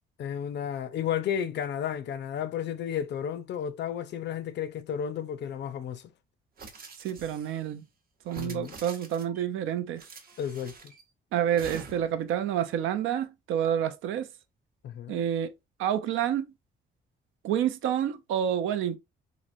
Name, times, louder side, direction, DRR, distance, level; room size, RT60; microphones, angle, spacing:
voice 1, 0.2-6.1 8.4-8.8 10.4-10.9 14.8-15.2, left 9 dB, 60° left, 0.5 m, -33 dB
sound 1, 6.6-7.6 8.2-9.4 10.0-11.0 11.6-12.2, right 4 dB, 50° right, 0.8 m, -46 dB
voice 2, 7.0-7.8 8.3-10.0 11.3-14.3 15.1-15.5 15.8-16.5 17.4-19.0, right 9 dB, 85° right, 0.5 m, -28 dB
3.1 x 2.5 x 2.5 m
cardioid pair, 90°, 20 cm